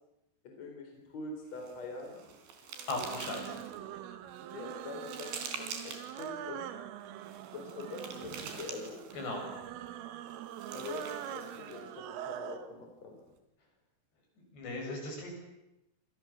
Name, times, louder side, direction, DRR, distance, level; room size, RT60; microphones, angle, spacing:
voice 1, 0.4-2.2 4.5-6.6 7.5-9.0 10.7-13.2, left 3 dB, 35° left, 2 dB, 5.1 m, -44 dB
sound 1, 1.5-3.8 4.3-6.3 7.2-9.3 10.3-11.9, right 6 dB, 65° right, 5.6 m, -46 dB
sound 2, 2.7-12.7, right 11 dB, 90° right, 4.1 m, -43 dB
voice 2, 2.9-3.5 9.2-9.4 14.5-15.3, left 2 dB, 60° left, 2 dB, 9.2 m, -37 dB
28.5 x 28.0 x 7.2 m, 0.90 s
omnidirectional pair, 5.6 m